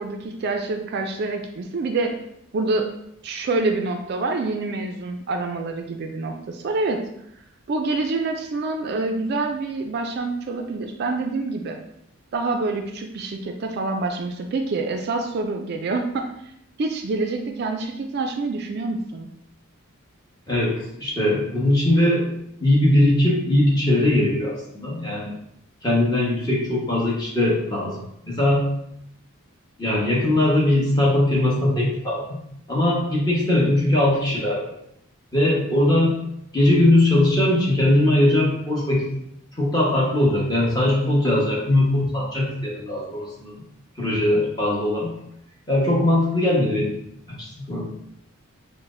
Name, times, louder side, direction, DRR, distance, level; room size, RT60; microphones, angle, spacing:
voice 1, 0.0-2.2 2.5-2.9 3.2-7.0 7.7-11.8 12.3-16.3 16.8-19.3, right 3 dB, 50° right, 4 dB, 0.3 m, -26 dB
voice 2, 20.5-22.3 22.6-25.3 25.8-28.0 28.2-28.6 29.8-32.4 32.7-34.7 35.3-36.2 36.5-39.0 39.6-43.5 44.0-45.1 45.7-47.0 47.3-47.9, left 1 dB, 20° left, -5 dB, 1.0 m, -20 dB
5.7 x 2.1 x 2.5 m, 0.76 s
head